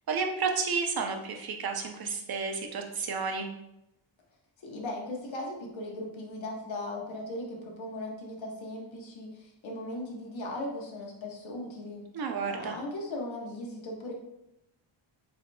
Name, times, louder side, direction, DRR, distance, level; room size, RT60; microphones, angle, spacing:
voice 1, 0.1-3.5 12.1-12.8, right 5 dB, 50° right, 4 dB, 0.7 m, -31 dB
voice 2, 4.6-12.1 12.5-14.1, left 1 dB, 75° left, -2 dB, 1.1 m, -38 dB
7.7 x 2.7 x 2.2 m, 0.85 s
wide cardioid pair, 150°, 47 cm